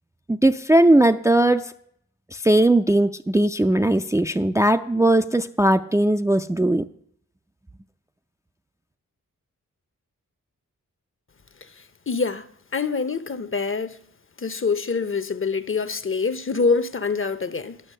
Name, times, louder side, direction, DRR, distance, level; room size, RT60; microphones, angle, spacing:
voice 1, 0.3-1.7 2.3-6.9, right 1 dB, 10° right, 0.4 m, -19 dB
voice 2, 12.1-12.5 12.7-14.0 14.4-17.8, left 4 dB, 40° left, 0.8 m, -25 dB
10.0 x 6.0 x 6.5 m
cardioid pair, 40°, 34 cm